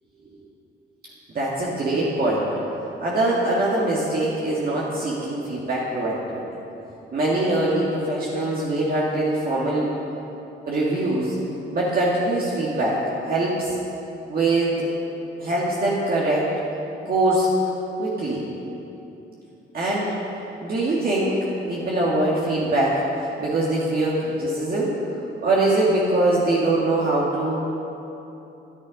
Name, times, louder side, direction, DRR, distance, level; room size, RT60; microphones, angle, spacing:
voice 1, 1.3-2.5 3.0-6.4 7.1-9.9 10.7-11.4 11.7-13.8 14.3-14.9 15.4-16.5 17.1-17.5 18.0-18.5 19.7-20.2 20.6-21.4 21.7-25.0 25.4-27.6, right 2 dB, 50° right, -5 dB, 2.0 m, -23 dB
13.0 x 10.0 x 5.2 m, 2.9 s
cardioid pair, 90°, 20 cm